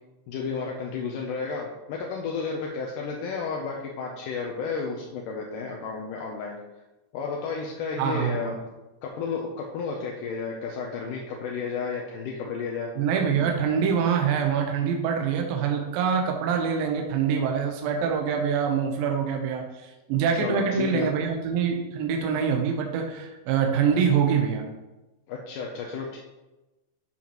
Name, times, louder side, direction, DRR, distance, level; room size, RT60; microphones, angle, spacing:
voice 1, 0.3-6.6 7.1-8.6 9.0-12.9 13.4-13.5 20.4-21.1 25.3-26.2, left 5 dB, 75° left, 0 dB, 2.0 m, -32 dB
voice 2, 8.0-8.5 13.0-24.7, right 7 dB, 75° right, 2 dB, 2.5 m, -25 dB
12.5 x 5.6 x 3.0 m, 1.1 s
omnidirectional pair, 4.5 m